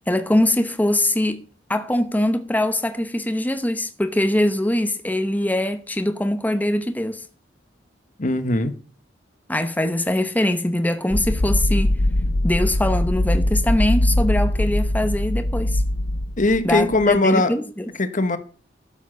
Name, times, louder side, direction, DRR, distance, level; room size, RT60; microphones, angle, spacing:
voice 1, 0.1-1.4 1.7-7.2 9.5-11.9 12.4-15.8 16.6-17.9, left 1 dB, 10° left, 0.9 m, -22 dB
voice 2, 8.2-8.7 16.4-17.5 18.0-18.4, left 2 dB, 45° left, 1.2 m, -20 dB
sound 1, 11.1-17.2, left 1 dB, 60° left, 1.1 m, -21 dB
13.0 x 7.3 x 6.4 m
head